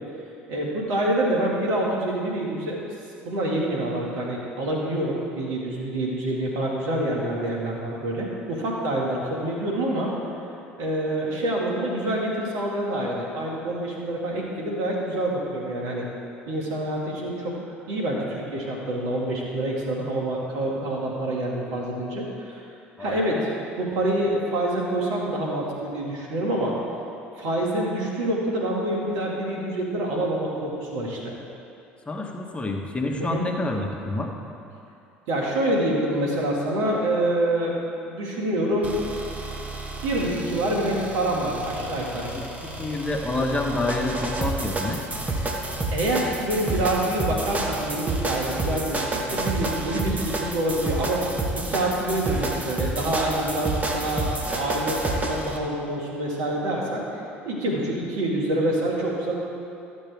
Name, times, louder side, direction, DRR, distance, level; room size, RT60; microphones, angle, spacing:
voice 1, 0.5-2.8 3.2-10.1 10.8-16.1 16.5-17.6 17.9-22.6 23.0-23.5 23.8-26.8 27.4-31.3 33.2-33.4 35.3-37.8 38.1-39.0 40.0-42.3 45.9-51.2 51.5-57.0 57.5-59.3, right 1 dB, 70° right, -3 dB, 2.1 m, -26 dB
voice 2, 23.0-23.4 32.1-34.3 42.3-45.0, left 2 dB, 20° left, 1 dB, 1.3 m, -28 dB
sound 1, 38.8-55.6, right 2 dB, 25° right, 1.4 m, -30 dB
14.0 x 7.4 x 3.5 m, 2.7 s
hypercardioid pair, 70°, 6 cm